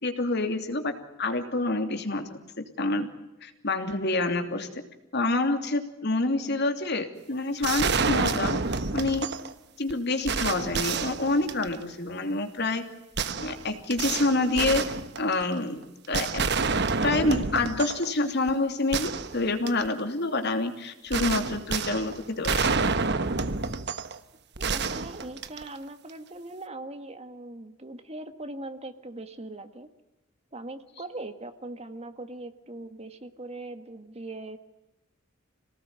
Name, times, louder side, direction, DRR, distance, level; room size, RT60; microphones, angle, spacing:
voice 1, 0.0-3.1 3.4-4.7 5.1-9.3 9.8-12.9 13.4-16.5 17.0-22.7, left 2 dB, 55° left, 6 dB, 3.0 m, -27 dB
sound 1, 7.6-9.5 9.9-10.0 10.3-11.9 13.2-15.6 16.1-18.1 18.5-18.6 18.9-19.9 21.1-24.2 24.6-25.9, right 4 dB, 55° right, 1.3 m, -29 dB
voice 2, 24.6-29.9 30.5-34.6, right 2 dB, 30° right, 9 dB, 1.8 m, -40 dB
27.5 x 19.0 x 9.7 m, 0.96 s
head